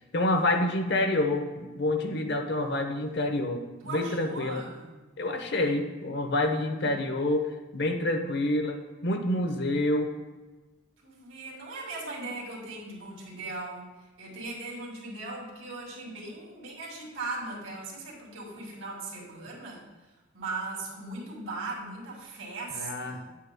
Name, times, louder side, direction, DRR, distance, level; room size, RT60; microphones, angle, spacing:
voice 1, 0.1-4.6 5.2-10.1 22.7-23.2, left 1 dB, 55° left, 5 dB, 0.8 m, -28 dB
voice 2, 3.8-4.9 6.8-7.0 11.0-19.8 20.3-23.2, right 3 dB, 80° right, -3 dB, 2.6 m, -39 dB
9.3 x 8.4 x 2.2 m, 1.2 s
head